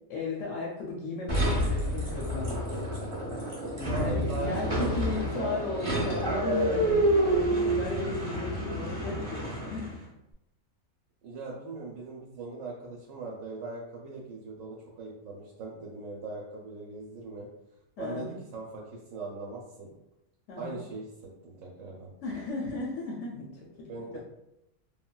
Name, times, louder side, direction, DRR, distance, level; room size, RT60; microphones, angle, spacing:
voice 1, 0.1-2.6 4.0-10.1 18.0-18.4 20.5-20.8 22.2-23.9, left 3 dB, 70° left, -3 dB, 0.9 m, -35 dB
sound 1, 1.3-10.0, right 1 dB, 25° right, 0.7 m, -28 dB
voice 2, 3.7-5.6 11.2-17.5 18.0-19.9 20.6-21.1 21.4-22.1 23.9-24.2, right 3 dB, 70° right, -3 dB, 0.9 m, -40 dB
3.3 x 2.2 x 2.2 m, 0.88 s
omnidirectional pair, 1.5 m